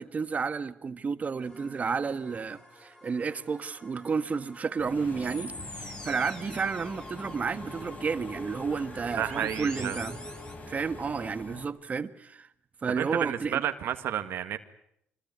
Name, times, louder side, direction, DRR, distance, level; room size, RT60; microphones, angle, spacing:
voice 1, 0.0-10.3 10.7-12.5 12.8-13.6, right 5 dB, 35° right, 1.5 m, -31 dB
sound 1, 1.4-10.6, left 1 dB, 15° left, 4.8 m, -47 dB
Engine / Mechanisms, 4.8-11.7, left 2 dB, 40° left, 4.1 m, -43 dB
voice 2, 9.2-10.0 12.9-14.6, right 10 dB, 70° right, 1.7 m, -31 dB
25.5 x 21.0 x 9.3 m
cardioid pair, 90°, 4 cm